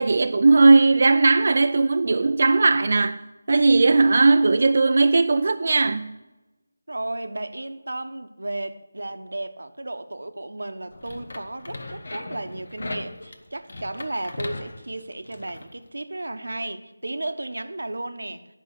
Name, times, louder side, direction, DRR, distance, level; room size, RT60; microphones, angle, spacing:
voice 1, 0.0-3.2 3.5-6.2, right 3 dB, 50° right, 0.4 m, -18 dB
voice 2, 6.9-18.5, right 2 dB, 85° right, 0.9 m, -34 dB
sound 1, 10.9-15.7, left 2 dB, 60° left, 1.1 m, -37 dB
9.2 x 5.6 x 8.0 m
figure-of-eight pair, 170°, 0 cm